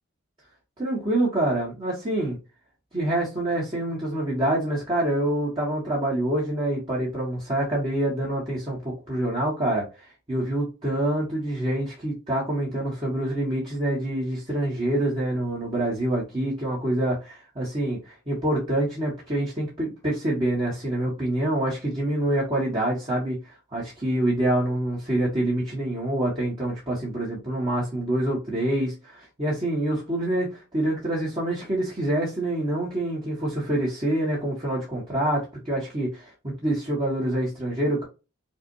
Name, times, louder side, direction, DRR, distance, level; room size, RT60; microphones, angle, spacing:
voice 1, 0.8-2.4 2.9-9.9 10.3-18.0 18.3-38.0, right 1 dB, 25° right, -5 dB, 1.6 m, -26 dB
6.1 x 2.6 x 2.7 m, 0.29 s
head